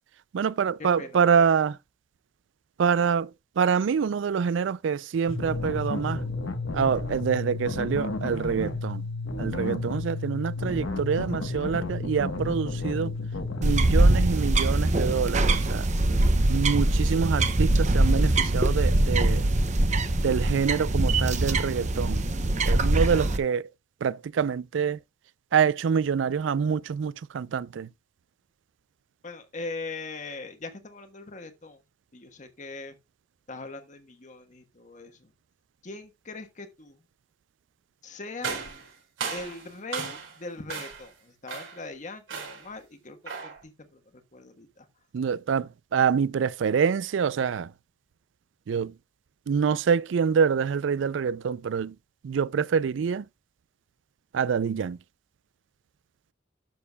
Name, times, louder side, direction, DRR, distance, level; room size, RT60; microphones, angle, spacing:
voice 1, 0.3-1.8 2.8-3.3 3.6-6.2 6.7-9.1 9.4-13.1 13.6-15.9 16.5-19.4 20.1-22.3 22.7-23.7 24.0-25.0 25.5-27.9 45.1-47.7 48.7-48.9 49.5-51.9 52.2-53.3 54.3-55.0, right 6 dB, 70° right, 0.4 m, -26 dB
sound 1, 5.3-14.2, left 3 dB, 85° left, 1.2 m, -32 dB
sound 2, 13.6-23.4, right 1 dB, 35° right, 0.8 m, -23 dB
voice 2, 29.2-31.8 32.1-32.9 33.5-35.3 35.8-37.0 38.0-38.6 39.2-44.0 44.3-44.9, left 3 dB, 40° left, 1.2 m, -41 dB
sound 3, 38.4-40.4 40.7-41.1 41.5-41.9 42.3-42.7 43.3-43.6, right 5 dB, 85° right, 4.3 m, -35 dB
12.0 x 6.7 x 2.3 m
head